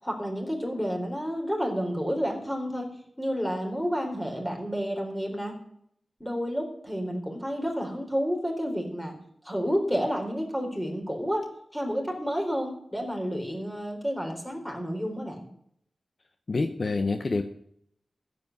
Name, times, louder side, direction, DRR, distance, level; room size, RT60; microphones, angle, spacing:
voice 1, 0.0-2.9 3.2-5.5 6.2-9.1 9.4-11.5 11.7-15.5, equal, 5° left, 2 dB, 4.0 m, -30 dB
voice 2, 16.5-17.4, left 3 dB, 50° left, 6 dB, 0.9 m, -27 dB
14.5 x 8.1 x 9.3 m, 0.70 s
wide cardioid pair, 115°, 0 cm